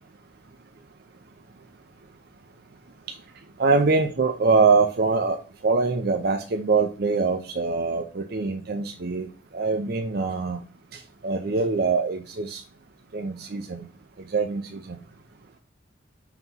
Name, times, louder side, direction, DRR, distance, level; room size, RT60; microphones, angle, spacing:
voice 1, 3.6-5.4 5.6-10.6 10.9-12.6 13.1-13.8 14.3-15.0, right 4 dB, 50° right, 4 dB, 0.5 m, -24 dB
5.8 x 3.0 x 5.4 m, 0.35 s
head